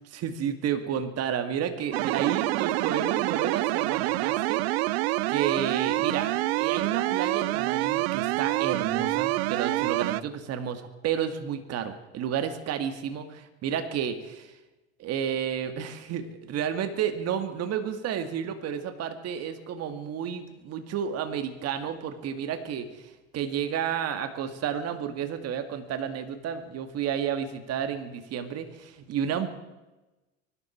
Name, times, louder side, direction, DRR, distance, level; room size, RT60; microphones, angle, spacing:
voice 1, 0.0-4.6 5.3-6.3 6.6-14.5 15.0-29.5, right 8 dB, 55° right, 9 dB, 2.1 m, -31 dB
sound 1, 1.9-10.2, right 19 dB, 85° right, 0.5 m, -27 dB
24.0 x 12.5 x 4.5 m, 1.1 s
supercardioid pair, 95°, 31 cm